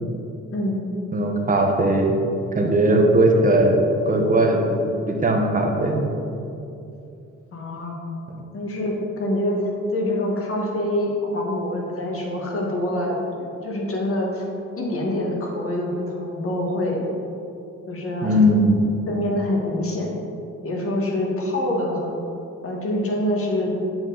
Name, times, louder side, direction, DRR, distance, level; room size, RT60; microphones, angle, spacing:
voice 1, 0.5-0.8 7.5-7.9 8.5-14.5 14.8-17.0 17.9-18.4 19.1-20.1 20.6-22.2 22.6-23.7, left 1 dB, 45° left, -1 dB, 1.5 m, -25 dB
voice 2, 1.1-2.1 2.5-3.8 4.0-4.8 5.1-6.1 18.2-18.8, right 1 dB, 25° right, 2 dB, 1.0 m, -18 dB
7.5 x 4.6 x 3.9 m, 2.7 s
cardioid pair, 90°, 30 cm